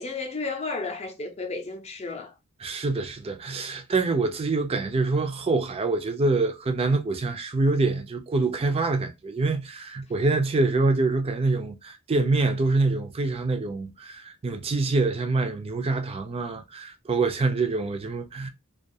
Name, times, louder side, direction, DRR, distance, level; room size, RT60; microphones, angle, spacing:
voice 1, 0.0-2.3, left 3 dB, 30° left, 0.5 m, -33 dB
voice 2, 2.6-18.5, right 3 dB, 25° right, 0.4 m, -25 dB
2.3 x 2.3 x 2.6 m
head